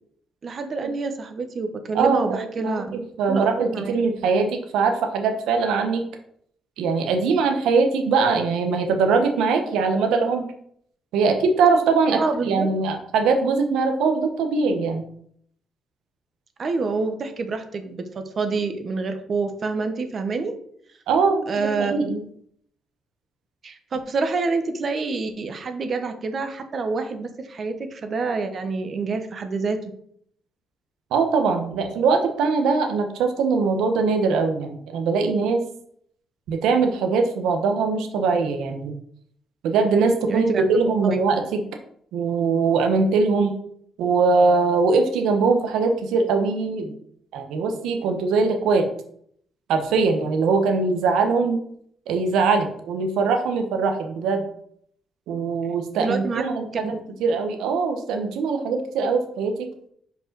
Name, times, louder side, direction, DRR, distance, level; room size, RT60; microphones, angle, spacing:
voice 1, 0.4-3.0 3.3-4.0 12.1-12.7 16.6-20.5 21.5-22.1 23.6-29.8 40.3-40.7 41.0-41.2 56.0-56.4 56.8-57.0, right 4 dB, 45° right, 7 dB, 1.0 m, -27 dB
voice 2, 1.9-6.0 6.8-10.5 11.1-12.2 12.4-15.0 21.1-21.5 21.8-22.2 31.1-35.6 36.5-38.9 39.6-41.6 42.1-43.5 44.0-46.9 47.3-48.8 49.7-51.6 52.1-54.4 55.3-56.9 57.2-59.7, right 4 dB, 90° right, 5 dB, 1.0 m, -21 dB
5.3 x 5.0 x 4.6 m, 0.66 s
cardioid pair, 90°, 0 cm